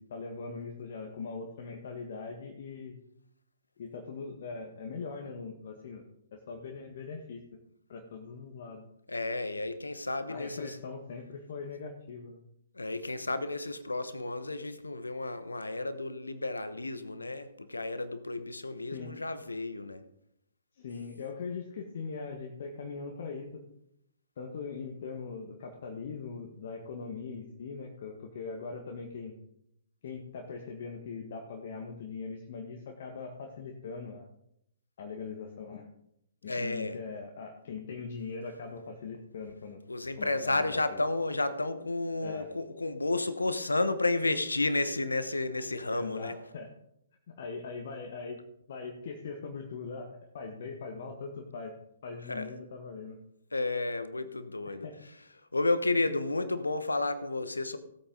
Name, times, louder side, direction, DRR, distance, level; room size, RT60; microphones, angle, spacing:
voice 1, 0.0-3.0 3.8-6.0 6.3-7.4 7.9-8.8 10.3-12.4 18.9-19.1 20.7-23.6 24.4-29.3 30.0-34.3 35.0-35.9 36.4-39.8 40.2-41.0 42.2-42.5 45.9-46.7 47.3-48.4 48.7-51.7 52.0-53.2 54.7-55.0, left 4 dB, 55° left, 1.7 m, -41 dB
voice 2, 9.1-10.8 12.7-20.0 36.5-37.0 39.9-46.4 52.2-52.5 53.5-54.9 55.5-57.8, left 2 dB, 80° left, 1.1 m, -32 dB
17.5 x 8.5 x 4.0 m
figure-of-eight pair, 120°, 0 cm